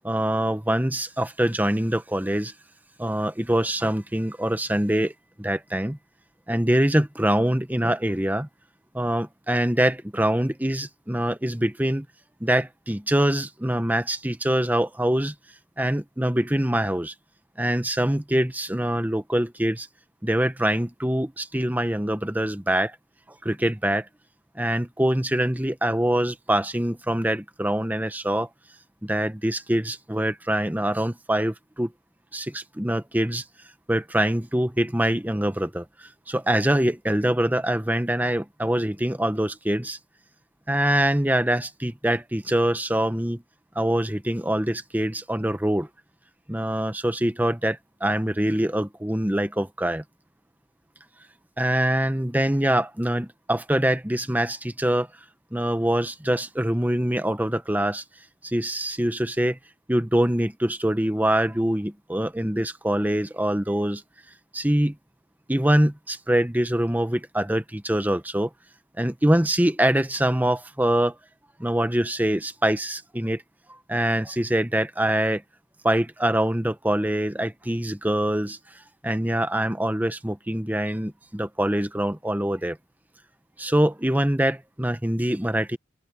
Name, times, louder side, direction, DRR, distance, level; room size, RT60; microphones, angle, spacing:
voice 1, 0.0-2.5 3.0-5.1 5.4-6.0 6.5-8.5 8.9-12.1 12.4-15.3 15.8-17.1 17.6-19.9 20.2-23.0 23.4-24.1 24.6-28.5 29.0-31.9 32.3-33.4 33.9-35.8 36.3-40.0 40.7-43.4 43.7-45.9 46.5-50.0 51.6-55.1 55.5-58.0 58.4-59.6 59.9-64.0 64.5-64.9 65.5-68.5 69.0-71.1 71.6-73.4 73.7-75.4 75.8-78.6 79.0-82.8 83.6-85.8, right 1 dB, 10° right, 1.1 m, -24 dB
open air
head